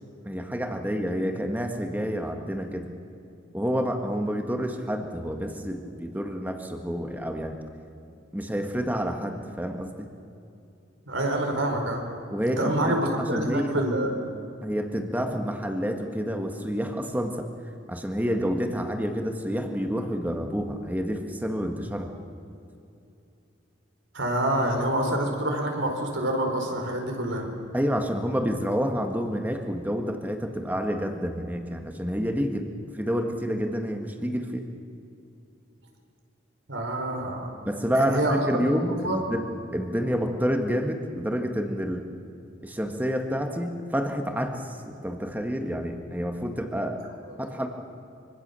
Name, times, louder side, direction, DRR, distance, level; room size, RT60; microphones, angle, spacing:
voice 1, 0.2-2.9 3.5-7.6 8.3-10.1 12.3-13.8 14.6-17.5 17.9-22.1 27.7-34.7 37.6-39.4 39.7-42.0 42.6-47.0 47.4-47.7, equal, 10° right, 4 dB, 1.8 m, -28 dB
voice 2, 11.1-12.0 12.6-14.1 24.1-27.5 36.7-37.5 38.0-38.4 39.0-39.2, right 1 dB, 80° right, 3 dB, 4.4 m, -27 dB
25.5 x 24.0 x 7.0 m, 2.7 s
head